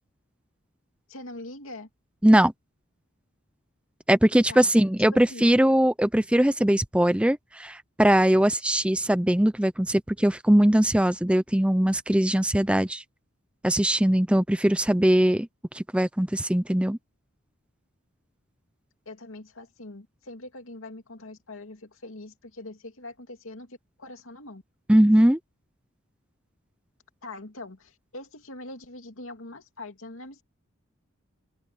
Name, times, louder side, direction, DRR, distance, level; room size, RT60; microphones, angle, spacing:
voice 1, 1.1-1.9 4.5-4.7 5.0-5.5 19.1-24.6 27.2-30.4, left 2 dB, 75° left, 2.5 m, -42 dB
voice 2, 4.1-13.0 13.6-15.5 15.7-17.0 24.9-25.4, right 1 dB, 5° right, 0.5 m, -21 dB
open air
head